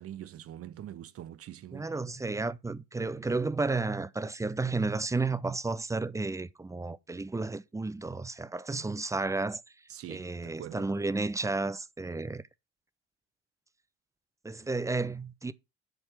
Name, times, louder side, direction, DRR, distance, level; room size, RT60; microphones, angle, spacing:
voice 1, 0.0-1.9 9.9-10.9, right 11 dB, 40° right, 0.8 m, -44 dB
voice 2, 1.7-9.6 10.1-12.4 14.4-15.5, right 3 dB, 10° right, 0.6 m, -32 dB
10.5 x 4.5 x 6.0 m
figure-of-eight pair, 55°, 35 cm